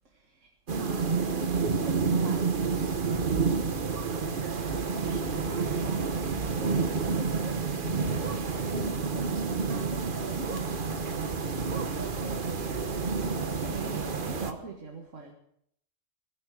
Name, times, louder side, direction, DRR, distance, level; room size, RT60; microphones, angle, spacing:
voice 1, 0.4-15.3, right 4 dB, 75° right, 1 dB, 2.1 m, -43 dB
sound 1, 0.7-14.5, right 5 dB, 45° right, 1.2 m, -29 dB
17.0 x 14.5 x 4.9 m, 0.70 s
omnidirectional pair, 1.3 m